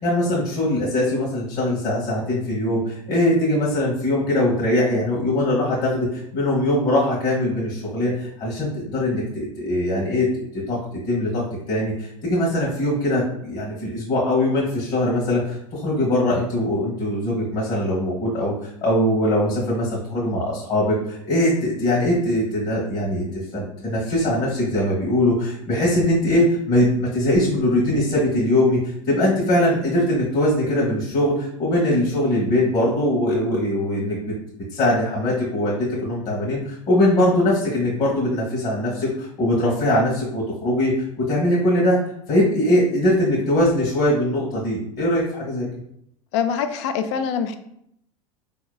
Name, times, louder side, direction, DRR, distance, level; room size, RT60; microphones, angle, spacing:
voice 1, 0.0-18.5 18.8-34.2 34.7-42.0 42.3-45.7, left 1 dB, 40° left, -5 dB, 1.3 m, -21 dB
voice 2, 46.3-47.6, left 7 dB, 60° left, 8 dB, 0.5 m, -24 dB
4.4 x 2.9 x 2.3 m, 0.73 s
hypercardioid pair, 85°, 18 cm